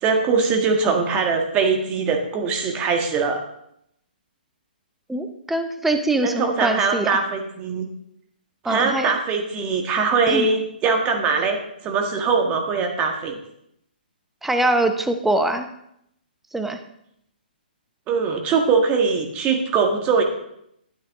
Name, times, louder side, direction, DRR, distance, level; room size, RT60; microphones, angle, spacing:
voice 1, 0.0-3.4 6.2-7.9 8.6-13.4 18.1-20.2, right 5 dB, 25° right, 3 dB, 1.7 m, -22 dB
voice 2, 5.1-7.2 8.6-9.1 10.3-10.4 14.4-15.7 16.5-16.8, right 2 dB, 5° right, 6 dB, 0.7 m, -23 dB
12.5 x 8.4 x 3.7 m, 0.75 s
hypercardioid pair, 140°, 5 cm